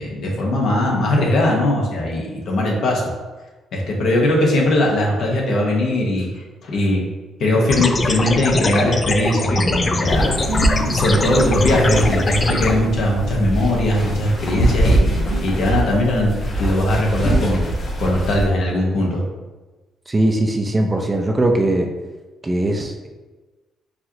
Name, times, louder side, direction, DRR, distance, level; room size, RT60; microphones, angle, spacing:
voice 1, 0.0-3.1 3.7-7.0 7.4-10.4 10.9-16.3 16.6-17.7 18.0-19.2, left 1 dB, 70° left, -2 dB, 1.1 m, -19 dB
sound 1, 7.4-15.4, right 3 dB, 85° right, 0.5 m, -31 dB
sound 2, 7.7-12.7, left 3 dB, 30° left, 0.4 m, -22 dB
sound 3, 10.1-18.5, right 1 dB, 50° left, 1.2 m, -23 dB
voice 2, 20.1-21.9 22.4-23.1, right 1 dB, 20° right, 3 dB, 0.5 m, -20 dB
4.6 x 3.0 x 2.9 m, 1.2 s
cardioid pair, 90°, 0 cm